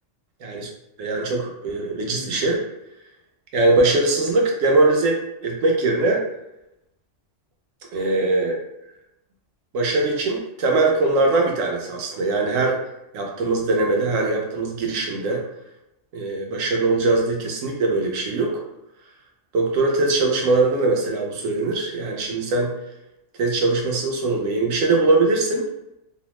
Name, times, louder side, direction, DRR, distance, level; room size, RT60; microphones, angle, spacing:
voice 1, 1.0-2.6 3.5-5.2 5.4-6.2 7.9-8.5 9.7-12.8 13.1-15.4 16.1-18.6 19.5-22.7 23.4-25.7, right 2 dB, 90° right, 0 dB, 1.0 m, -21 dB
2.7 x 2.0 x 3.0 m, 0.87 s
omnidirectional pair, 1.3 m